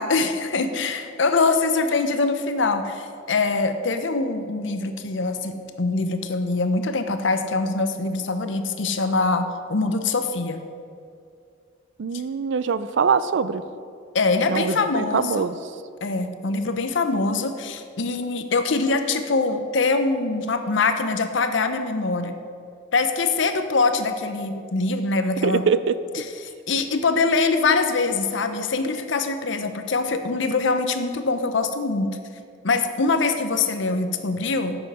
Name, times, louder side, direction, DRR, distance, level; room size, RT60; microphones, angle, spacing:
voice 1, 0.0-10.6 14.1-15.5 16.0-22.3 22.9-25.6 26.1-32.1 32.6-34.8, left 3 dB, 70° left, 8 dB, 0.7 m, -23 dB
voice 2, 12.0-13.6 14.5-15.6 25.4-26.0, right 6 dB, 65° right, 14 dB, 0.4 m, -23 dB
10.5 x 7.0 x 4.9 m, 2.4 s
head